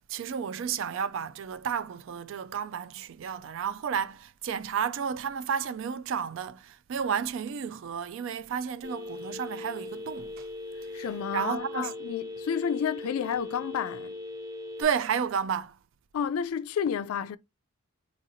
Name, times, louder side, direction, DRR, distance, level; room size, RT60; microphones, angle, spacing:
voice 1, 0.1-10.5 10.9-11.9 14.8-15.8, right 7 dB, 65° right, 0.3 m, -32 dB
Telephone, 8.8-14.8, left 2 dB, 15° right, 0.6 m, -39 dB
voice 2, 10.9-14.2 16.1-17.4, left 7 dB, 90° left, 0.3 m, -31 dB
3.9 x 2.8 x 2.5 m
head